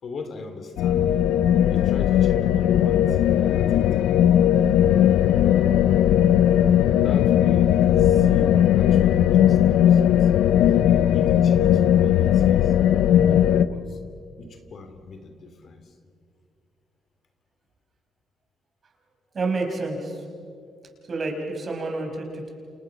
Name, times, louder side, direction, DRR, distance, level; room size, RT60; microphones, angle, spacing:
voice 1, 0.0-1.2 1.7-4.2 7.0-10.3 10.7-10.8 11.1-12.7 13.1-14.0 14.4-15.9, left 3 dB, 55° left, 7 dB, 2.6 m, -40 dB
sound 1, 0.8-13.7, left 10 dB, 90° left, 0.7 m, -18 dB
voice 2, 19.3-20.2 21.1-22.5, right 3 dB, 45° right, 2 dB, 5.7 m, -29 dB
29.0 x 28.0 x 5.9 m, 2.4 s
cardioid pair, 90°, 0 cm